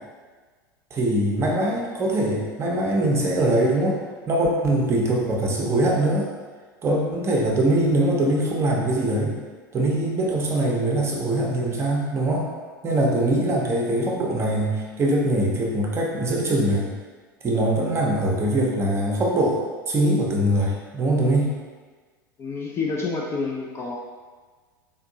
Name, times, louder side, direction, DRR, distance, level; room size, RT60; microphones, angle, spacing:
voice 1, 0.9-4.0 4.3-6.3 6.8-9.3 9.7-12.5 12.8-16.9 17.4-19.6 19.9-21.5, right 1 dB, 20° right, -2 dB, 0.6 m, -22 dB
voice 2, 22.4-24.0, left 4 dB, 20° left, -2 dB, 0.3 m, -28 dB
3.6 x 2.6 x 2.7 m, 1.5 s
figure-of-eight pair, 85°, 12 cm